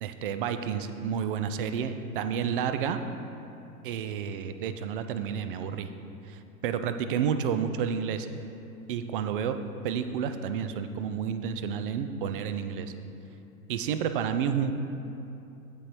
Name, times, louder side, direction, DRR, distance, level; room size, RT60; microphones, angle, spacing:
voice 1, 0.0-3.0 3.8-5.9 6.3-8.3 8.9-12.9 13.7-14.7, right 7 dB, 40° right, 9 dB, 0.4 m, -30 dB
15.5 x 5.2 x 3.0 m, 2.8 s
figure-of-eight pair, 95°, 46 cm